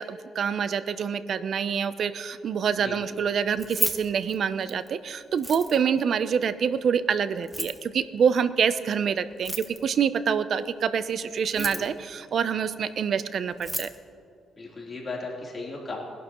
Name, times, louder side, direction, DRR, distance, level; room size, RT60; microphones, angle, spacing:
voice 1, 0.0-13.9, right 7 dB, 60° right, 13 dB, 0.6 m, -26 dB
Keys jangling, 3.5-4.9 5.3-6.0 7.4-7.8 9.3-10.0 11.4-12.0 13.2-13.3 13.5-14.0, equal, 5° right, 1.0 m, -32 dB
voice 2, 14.6-16.0, left 3 dB, 30° left, -4 dB, 3.4 m, -36 dB
20.5 x 11.5 x 3.0 m, 2.4 s
cardioid pair, 100°, 0 cm